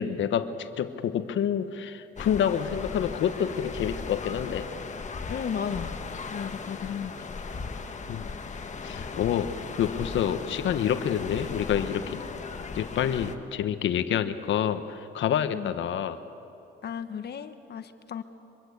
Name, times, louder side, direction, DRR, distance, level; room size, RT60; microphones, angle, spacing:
voice 1, 0.0-4.7 8.1-8.3 8.8-9.5 9.8-12.2 12.7-16.2, left 9 dB, 75° left, 10 dB, 1.3 m, -28 dB
sound 1, 2.2-13.4, left 4 dB, 35° left, 1.6 m, -37 dB
voice 2, 5.3-6.0 6.3-7.1 15.5-15.7 16.8-18.2, left 7 dB, 55° left, 10 dB, 1.4 m, -34 dB
24.5 x 23.0 x 8.2 m, 2.8 s
cardioid pair, 90°, 20 cm